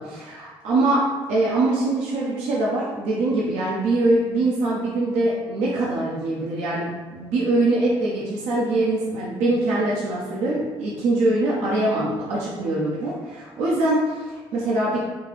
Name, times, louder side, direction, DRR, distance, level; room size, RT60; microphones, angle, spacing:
voice 1, 0.6-15.0, right 2 dB, 85° right, -5 dB, 0.6 m, -23 dB
3.6 x 2.4 x 3.1 m, 1.3 s
supercardioid pair, 65°, 11 cm